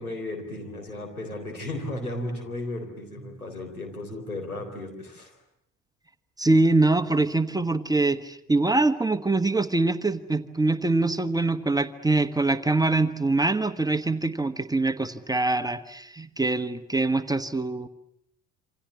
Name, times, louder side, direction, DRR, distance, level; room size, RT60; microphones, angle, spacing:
voice 1, 0.0-5.3, left 1 dB, 90° left, 2 dB, 4.1 m, -35 dB
voice 2, 6.4-17.9, right 2 dB, 10° right, 10 dB, 1.3 m, -24 dB
28.0 x 26.5 x 7.4 m, 0.74 s
figure-of-eight pair, 55°, 43 cm